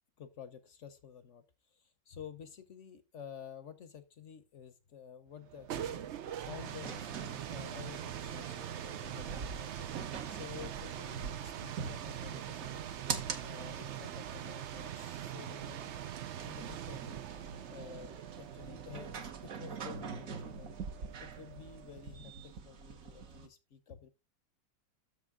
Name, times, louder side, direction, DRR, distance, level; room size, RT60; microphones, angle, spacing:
voice 1, 0.2-12.9 13.4-15.9 16.4-17.2 17.5-20.8 21.2-24.1, left 8 dB, 55° left, 11 dB, 0.9 m, -51 dB
sound 1, 5.4-22.1, right 10 dB, 80° right, 0.6 m, -43 dB
sound 2, 6.2-23.5, right 5 dB, 55° right, 1.2 m, -45 dB
7.1 x 6.6 x 3.7 m, 0.26 s
omnidirectional pair, 1.9 m